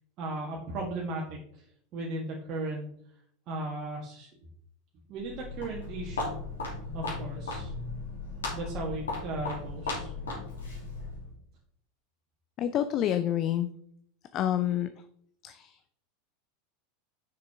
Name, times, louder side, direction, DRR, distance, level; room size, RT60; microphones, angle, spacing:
voice 1, 0.2-1.7 1.9-2.9 3.5-4.3 5.1-6.4 6.9-7.7 8.5-10.1, right 2 dB, 40° right, -3 dB, 1.7 m, -36 dB
Walk footsteps, 5.1-11.3, left 3 dB, 75° left, 3.0 m, -36 dB
voice 2, 12.6-13.7 14.3-14.9 15.4-15.7, left 11 dB, 40° left, 10 dB, 0.4 m, -28 dB
6.7 x 6.6 x 3.6 m, 0.66 s
figure-of-eight pair, 85°, 0 cm